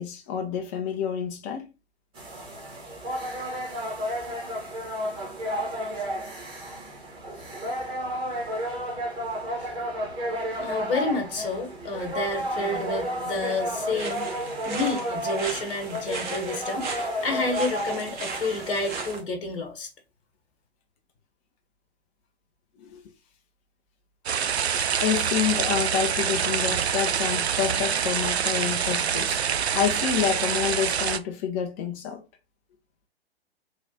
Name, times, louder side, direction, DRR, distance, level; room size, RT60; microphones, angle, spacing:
voice 1, 0.0-1.7 22.8-23.0 24.8-29.4 29.7-32.2, left 8 dB, 15° left, 0.3 m, -28 dB
sound 1, 2.1-19.2, equal, 15° right, 1.0 m, -32 dB
voice 2, 10.6-14.3 14.6-19.9, left 3 dB, 55° left, 1.1 m, -30 dB
sound 2, 13.9-19.2, right 4 dB, 45° right, 1.0 m, -37 dB
sound 3, 24.3-31.2, right 7 dB, 75° right, 0.5 m, -26 dB
3.2 x 2.4 x 3.9 m
figure-of-eight pair, 115°, 32 cm